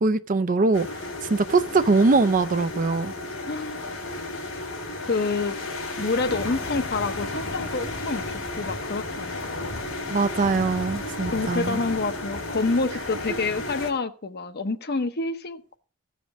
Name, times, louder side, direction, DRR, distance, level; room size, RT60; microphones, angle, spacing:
voice 1, 0.0-0.9 1.3-3.1 10.1-11.8 13.3-13.4, right 3 dB, 40° right, 0.5 m, -22 dB
sound 1, 0.7-13.9, left 2 dB, 75° left, 2.8 m, -33 dB
voice 2, 5.1-5.6 6.0-9.7 11.3-15.8, left 3 dB, 50° left, 0.8 m, -28 dB
15.0 x 5.1 x 6.2 m
head